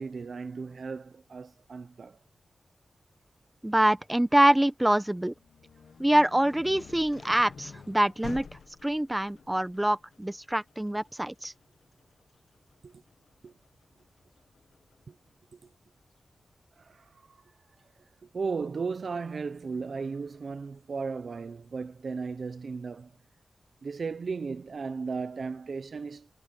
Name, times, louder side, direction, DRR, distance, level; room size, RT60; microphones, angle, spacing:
voice 1, 0.0-2.2 12.8-13.0 13.4-13.5 15.1-15.2 15.5-15.6 16.8-17.4 18.2-23.1 23.8-26.3, right 4 dB, 65° right, 0.9 m, -36 dB
voice 2, 3.6-5.3 6.0-8.5 8.8-11.5, right 1 dB, 15° right, 1.1 m, -25 dB
sound 1, 5.3-15.1, left 5 dB, 80° left, 1.6 m, -49 dB
cardioid pair, 60°, 0 cm